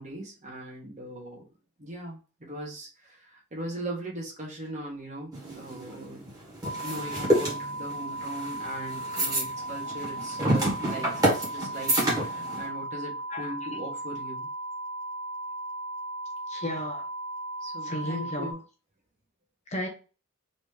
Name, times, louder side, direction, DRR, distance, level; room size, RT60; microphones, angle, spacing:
voice 1, 0.0-1.4 1.8-6.2 6.8-14.5 17.6-18.6, right 1 dB, 35° right, 1.5 m, -39 dB
sound 1, 5.3-12.7, right 1 dB, 15° right, 1.6 m, -28 dB
sound 2, 6.6-18.5, right 1 dB, 45° left, 1.4 m, -36 dB
voice 2, 16.5-17.0 17.8-18.5 19.7-19.9, left 1 dB, 30° left, 0.8 m, -33 dB
4.2 x 3.0 x 3.3 m
head